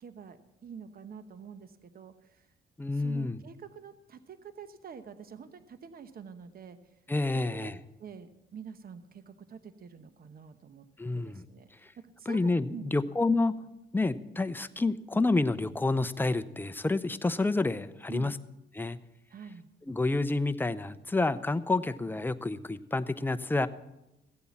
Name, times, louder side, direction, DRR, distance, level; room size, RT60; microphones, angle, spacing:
voice 1, 0.0-2.5 2.9-6.8 7.3-7.7 8.0-10.8 11.1-12.9 18.1-18.4 19.3-19.7, right 6 dB, 50° right, 1.0 m, -47 dB
voice 2, 2.8-3.4 7.1-7.7 11.0-11.4 12.3-13.5 13.9-18.4 18.7-19.0 19.9-23.7, left 2 dB, 10° left, 0.6 m, -29 dB
15.0 x 8.5 x 7.2 m
cardioid pair, 90°, 20 cm